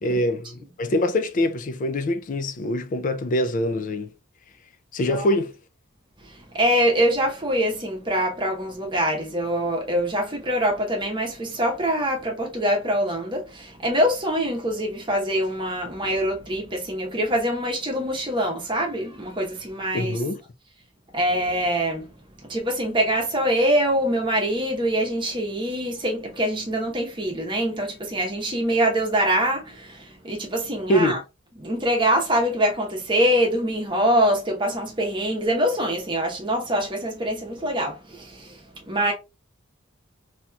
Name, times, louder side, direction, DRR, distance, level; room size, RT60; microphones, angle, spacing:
voice 1, 0.0-4.1 4.9-5.5 19.9-20.4 30.9-31.2, left 1 dB, 40° left, 0.4 m, -24 dB
voice 2, 6.3-20.2 21.1-31.2 31.6-39.1, equal, 25° right, 0.9 m, -24 dB
3.0 x 2.8 x 2.2 m
head